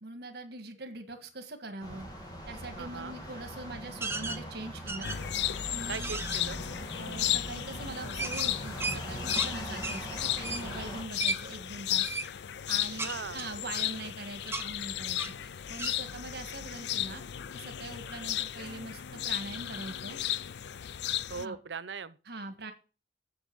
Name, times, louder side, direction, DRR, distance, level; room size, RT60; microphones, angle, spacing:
voice 1, 0.0-2.1 2.5-5.1 5.7-6.2 6.9-12.2 12.7-17.2 17.5-20.2 21.3-21.6 22.3-22.7, right 2 dB, 65° right, 1.7 m, -42 dB
sound 1, 1.8-11.0, equal, 25° left, 2.7 m, -42 dB
voice 2, 2.8-3.2 5.9-6.6 13.0-13.4 21.3-22.2, right 5 dB, 90° right, 0.8 m, -39 dB
sound 2, 4.0-4.4 4.9-5.4 5.8-6.4 8.2-9.5 9.8-10.0 10.4-10.7 11.2-11.4 12.0-12.3 13.0-14.1 14.5-14.7 15.2-15.4 15.8-16.0, right 3 dB, 15° right, 0.8 m, -35 dB
sound 3, 5.0-21.4, left 12 dB, 65° left, 0.4 m, -35 dB
8.0 x 7.2 x 7.0 m
head